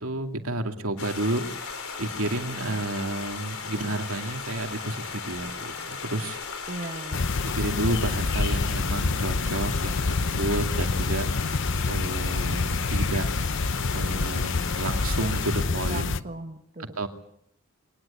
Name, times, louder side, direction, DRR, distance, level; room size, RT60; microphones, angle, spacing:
voice 1, 0.0-1.4 2.0-6.4 7.4-11.3 11.9-13.3 13.9-16.2 17.0-17.1, right 1 dB, 75° right, 5 dB, 2.5 m, -31 dB
sound 1, 1.0-15.6, left 5 dB, 80° left, 4.0 m, -36 dB
voice 2, 6.7-7.3 15.9-17.1, right 2 dB, 35° right, 5 dB, 1.4 m, -37 dB
sound 2, 7.1-16.2, left 3 dB, 60° left, 0.8 m, -27 dB
23.0 x 19.0 x 8.6 m, 0.72 s
head